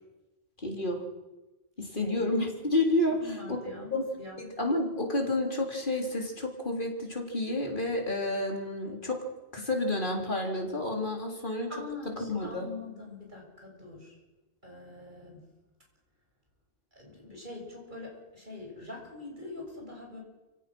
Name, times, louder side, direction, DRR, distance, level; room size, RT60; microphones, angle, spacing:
voice 1, 0.6-1.0 1.8-3.6 3.9-4.0 4.4-11.7 12.2-12.7, left 2 dB, 50° left, 2 dB, 3.8 m, -30 dB
voice 2, 3.1-4.4 11.7-14.2 14.6-15.5 16.9-20.2, left 3 dB, 45° right, 0 dB, 7.1 m, -44 dB
29.0 x 17.5 x 6.2 m, 1.1 s
omnidirectional pair, 1.1 m